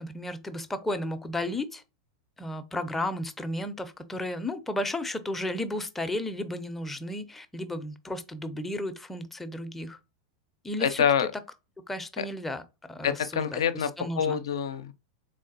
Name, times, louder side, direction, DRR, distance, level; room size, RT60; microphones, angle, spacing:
voice 1, 0.0-1.8 2.4-10.0 10.6-11.0 11.9-12.6 12.9-14.4, left 1 dB, 10° left, 0.5 m, -33 dB
voice 2, 10.8-11.3 12.2-12.3 13.0-14.9, left 8 dB, 70° left, 0.4 m, -26 dB
3.5 x 3.2 x 2.7 m
hypercardioid pair, 95°, 2 cm